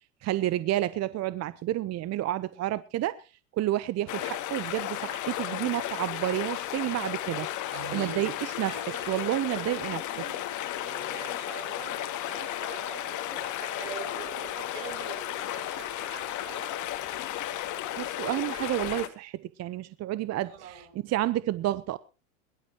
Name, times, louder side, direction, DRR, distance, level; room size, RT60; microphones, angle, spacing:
voice 1, 0.2-7.5 7.9-8.8 9.1-10.3 18.0-22.0, right 14 dB, 40° right, 0.9 m, -30 dB
sound 1, 4.1-19.1, left 12 dB, 50° left, 2.2 m, -34 dB
voice 2, 7.7-8.3 8.6-9.8 10.1-16.8 20.4-21.0, right 8 dB, 70° right, 5.8 m, -44 dB
22.0 x 12.0 x 2.9 m
hypercardioid pair, 95°, 38 cm